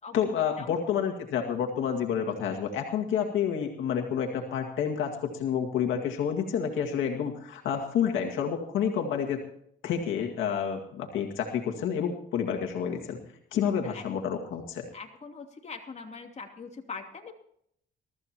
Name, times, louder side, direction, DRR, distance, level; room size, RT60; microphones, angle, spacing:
voice 1, 0.1-9.4 9.8-13.2 13.5-14.9, left 8 dB, 80° left, 3 dB, 2.0 m, -29 dB
voice 2, 14.9-17.3, left 5 dB, 35° left, 2 dB, 2.9 m, -42 dB
23.0 x 14.0 x 2.9 m, 0.69 s
cardioid pair, 90°, 20 cm